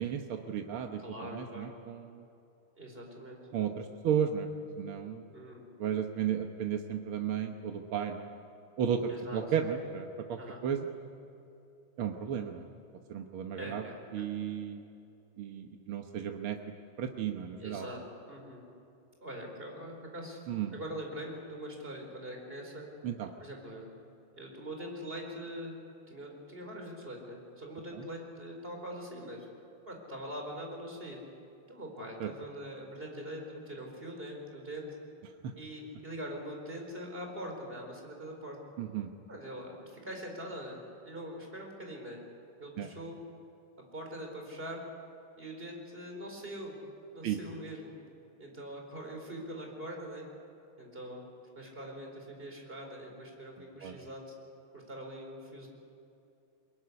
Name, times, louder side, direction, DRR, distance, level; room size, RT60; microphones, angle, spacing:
voice 1, 0.0-2.2 3.5-4.5 4.8-5.2 5.8-8.3 8.8-10.9 12.0-12.6 13.1-13.8 14.1-14.8 15.4-16.6 17.0-17.9 20.5-20.7 23.0-23.3 27.9-28.1 32.2-32.3 35.4-35.5 38.8-39.1 42.8-42.9 47.2-47.4 53.8-53.9, right 8 dB, 90° right, 4 dB, 2.0 m, -34 dB
voice 2, 1.0-1.7 2.7-3.4 5.3-5.6 9.1-9.4 10.4-10.6 13.6-14.3 17.6-18.0 18.3-18.6 19.2-20.4 20.7-22.9 23.4-23.9 24.3-25.7 26.1-29.5 29.9-31.2 31.7-34.9 35.5-38.6 39.3-40.8 41.0-42.2 42.6-43.2 43.9-44.8 45.4-46.7 47.1-47.9 48.4-50.3 50.8-51.3 51.5-54.2 54.7-55.7, equal, 25° right, 1 dB, 4.8 m, -43 dB
22.5 x 22.0 x 9.8 m, 2.7 s
omnidirectional pair, 2.3 m